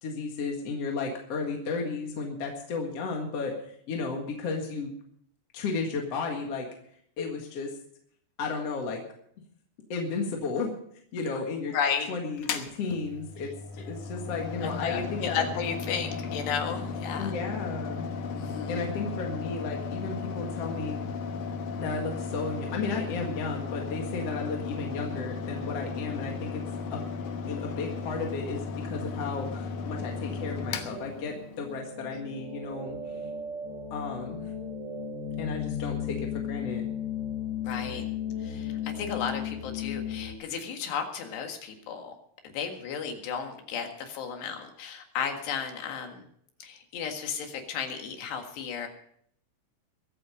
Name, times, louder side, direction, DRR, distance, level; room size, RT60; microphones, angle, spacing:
voice 1, 0.0-4.9 5.5-6.7 7.2-7.7 8.4-9.0 9.9-10.7 11.1-11.7 12.1-15.5 17.2-18.1 18.7-21.0 21.8-26.6 26.9-27.0 27.5-33.0 33.9-34.5 35.4-36.9, left 4 dB, 50° left, 1 dB, 2.3 m, -33 dB
voice 2, 11.7-12.2 14.6-17.4 18.3-18.8 32.1-32.2 37.6-38.1 38.4-42.1 42.4-46.2 46.6-48.9, left 7 dB, 85° left, 4 dB, 4.0 m, -34 dB
Mechanical fan, 12.4-31.8, left 4 dB, 65° left, 2.0 m, -35 dB
sound 1, 28.6-40.3, left 7 dB, 30° right, 2.6 m, -36 dB
23.0 x 8.6 x 5.2 m, 0.66 s
omnidirectional pair, 4.7 m